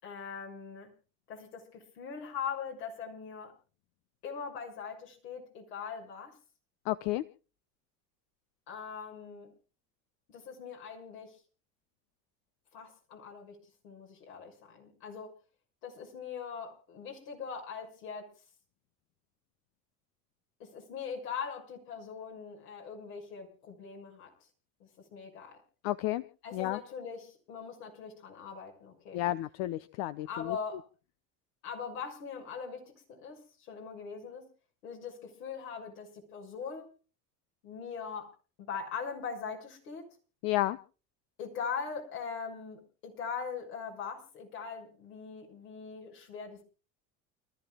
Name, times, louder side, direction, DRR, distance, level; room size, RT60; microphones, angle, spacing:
voice 1, 0.0-0.9 1.3-3.5 4.2-6.4 8.7-9.5 10.3-11.4 12.7-13.6 13.8-15.3 15.8-18.3 20.6-24.3 24.8-25.6 26.4-29.2 30.3-30.8 31.6-32.8 33.1-34.5 34.8-36.9 37.6-38.3 38.6-40.1 41.4-46.6, left 6 dB, 80° left, 0 dB, 6.5 m, -41 dB
voice 2, 6.8-7.2 25.8-26.2 26.5-26.8 29.1-30.6 40.4-40.8, left 15 dB, 60° left, 14 dB, 0.9 m, -31 dB
30.0 x 14.0 x 2.3 m, 0.35 s
hypercardioid pair, 75°, 48 cm